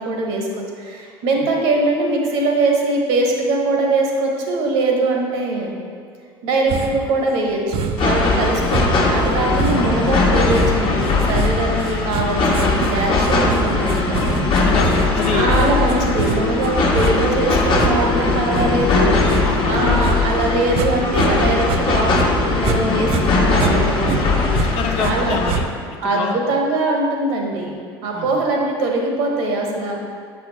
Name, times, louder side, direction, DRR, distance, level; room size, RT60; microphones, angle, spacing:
voice 1, 0.0-5.7 6.4-14.2 15.3-24.1 25.0-25.4 26.0-27.7 28.0-29.9, right 2 dB, 70° right, 1 dB, 1.1 m, -21 dB
sound 1, 6.7-7.1 7.7-8.2 8.7-21.3 21.6-22.8 23.1-25.1 25.5-26.0, right 6 dB, 50° right, 0.5 m, -26 dB
sound 2, 8.0-25.5, left 3 dB, 40° left, 1.1 m, -19 dB
voice 2, 14.5-15.5 19.4-19.6 24.5-25.7 26.0-26.4 28.1-28.4, left 6 dB, 65° left, 3 dB, 0.7 m, -26 dB
Wind instrument woodwind instrument, 15.1-21.1, left 5 dB, 5° left, 0.7 m, -29 dB
7.7 x 4.3 x 3.0 m, 2.1 s
hypercardioid pair, 70°, 13 cm